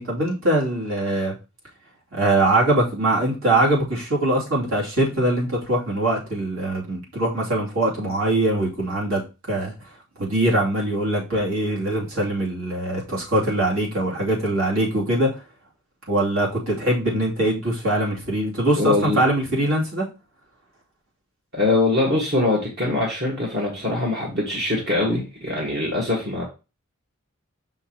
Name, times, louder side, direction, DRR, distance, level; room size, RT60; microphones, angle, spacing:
voice 1, 0.0-1.3 2.1-9.2 9.5-9.7 10.2-15.3 16.1-20.1, right 1 dB, 70° right, 2.7 m, -22 dB
voice 2, 18.8-19.2 21.5-26.5, left 2 dB, 45° right, 1.6 m, -23 dB
6.2 x 5.7 x 2.9 m
head